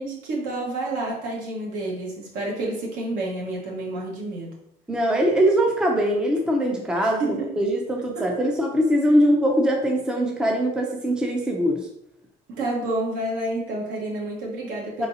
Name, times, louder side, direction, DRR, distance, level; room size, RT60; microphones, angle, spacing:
voice 1, 0.0-4.6 7.0-7.5 8.1-8.5 12.5-15.1, right 2 dB, 70° right, -2 dB, 1.5 m, -29 dB
voice 2, 4.9-11.8 15.0-15.1, equal, 5° right, 0 dB, 0.5 m, -22 dB
4.7 x 3.9 x 2.8 m, 0.73 s
cardioid pair, 175°, 15 cm